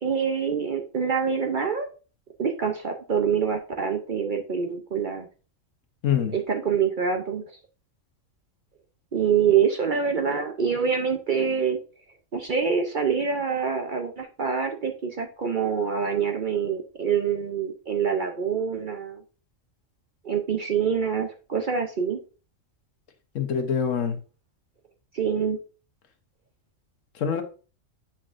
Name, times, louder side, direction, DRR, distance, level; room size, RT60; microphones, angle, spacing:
voice 1, 0.0-1.9 2.4-5.3 6.3-7.4 9.1-11.8 12.3-19.2 20.2-22.2 25.1-25.6, right 6 dB, 50° right, 0.6 m, -25 dB
voice 2, 6.0-6.3 23.3-24.2 27.1-27.4, left 7 dB, 75° left, 1.2 m, -25 dB
7.7 x 5.8 x 2.5 m
omnidirectional pair, 1.4 m